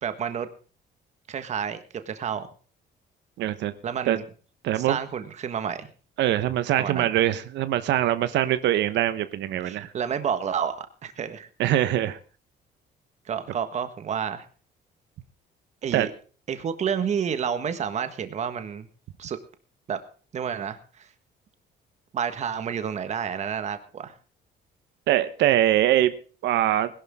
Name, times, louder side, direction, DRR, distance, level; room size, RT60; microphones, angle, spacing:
voice 1, 0.0-0.5 1.3-2.5 3.8-4.2 4.7-5.9 6.8-7.1 9.6-11.5 13.3-14.4 15.8-16.1 16.5-18.9 19.2-19.4 19.9-20.0 20.3-21.1 22.1-24.1, right 7 dB, 40° right, 10 dB, 1.5 m, -30 dB
voice 2, 3.4-3.7 4.1-4.2 4.6-5.0 6.2-9.9 11.6-12.2 15.9-16.1 25.1-26.1 26.4-26.9, right 12 dB, 85° right, 12 dB, 1.2 m, -23 dB
21.0 x 11.5 x 3.7 m, 0.39 s
cardioid pair, 170°, 18 cm